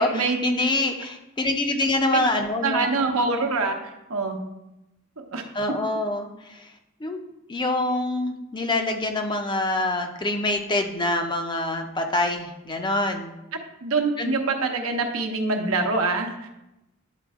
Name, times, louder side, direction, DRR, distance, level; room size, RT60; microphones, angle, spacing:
voice 1, 0.0-2.9 5.5-6.3 7.0-7.2 7.5-13.4 14.2-14.3, left 2 dB, 20° left, 4 dB, 0.6 m, -25 dB
voice 2, 2.6-3.8 4.1-4.4 5.3-5.4 13.8-16.5, right 3 dB, 75° right, 3 dB, 0.9 m, -24 dB
9.2 x 4.3 x 3.6 m, 0.93 s
head